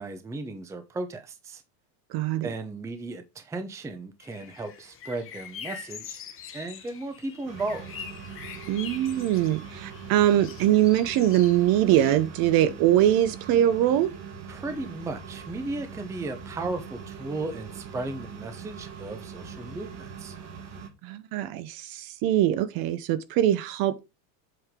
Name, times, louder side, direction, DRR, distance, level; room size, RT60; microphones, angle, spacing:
voice 1, 0.0-1.6 2.4-6.2 6.5-7.9 14.5-20.4, right 2 dB, 5° right, 0.6 m, -35 dB
voice 2, 2.1-2.5 8.7-14.1 21.0-24.0, right 12 dB, 45° right, 0.8 m, -22 dB
sound 1, 4.2-12.2, left 8 dB, 25° left, 1.0 m, -44 dB
sound 2, 7.5-20.9, right 6 dB, 80° right, 2.5 m, -42 dB
7.9 x 4.9 x 3.6 m
supercardioid pair, 150°, 49 cm